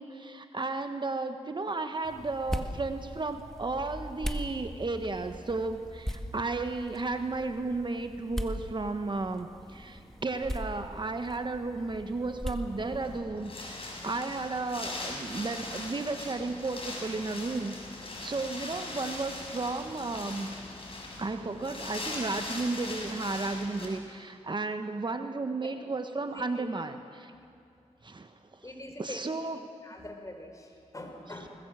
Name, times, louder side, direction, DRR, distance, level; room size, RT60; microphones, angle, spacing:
voice 1, 0.0-20.5 21.2-27.3 28.0-28.7 29.0-29.6 31.4-31.5, right 3 dB, 40° right, 8 dB, 1.2 m, -34 dB
sound 1, 2.0-13.2, equal, 5° left, 1.8 m, -40 dB
Wind, 12.6-23.9, left 2 dB, 50° left, 6.7 m, -40 dB
voice 2, 26.3-26.7 28.6-29.2 29.8-31.5, left 1 dB, 25° left, 3 dB, 4.9 m, -43 dB
21.0 x 19.5 x 7.6 m, 2.5 s
cardioid pair, 55°, 12 cm